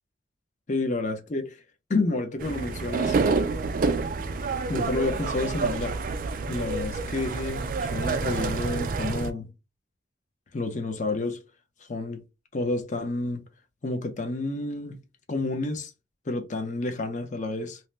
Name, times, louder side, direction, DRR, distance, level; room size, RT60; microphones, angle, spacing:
voice 1, 0.7-1.6 1.9-3.1 4.7-6.0 6.5-9.5 10.5-11.4 11.9-12.2 12.5-13.4 13.8-15.0 15.3-15.9 16.3-17.8, left 2 dB, 40° left, 0.5 m, -29 dB
sound 1, 2.4-9.3, right 4 dB, 45° right, 0.3 m, -28 dB
2.7 x 2.1 x 3.2 m
head